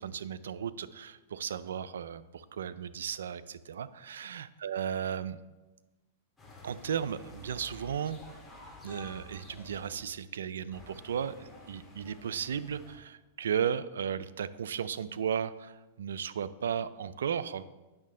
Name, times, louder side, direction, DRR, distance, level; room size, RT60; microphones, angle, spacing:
voice 1, 0.0-5.4 6.6-8.2 8.8-17.6, right 8 dB, 80° right, 15 dB, 0.4 m, -35 dB
sound 1, 6.4-10.0 10.7-13.0, left 2 dB, 5° left, 2.5 m, -51 dB
8.6 x 6.3 x 3.7 m, 1.1 s
hypercardioid pair, 115°, 0 cm